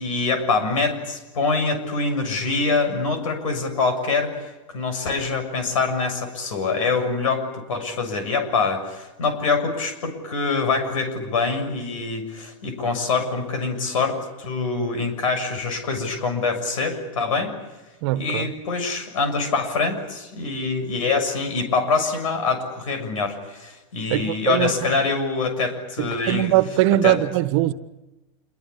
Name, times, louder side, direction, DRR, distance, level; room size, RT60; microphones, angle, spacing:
voice 1, 0.0-17.5 18.1-26.6 27.0-27.2, left 4 dB, 90° left, 7.0 m, -25 dB
voice 2, 18.0-18.5 24.1-24.7 26.0-27.7, right 14 dB, 60° right, 1.4 m, -21 dB
27.5 x 23.5 x 8.5 m
supercardioid pair, 135°, 17 cm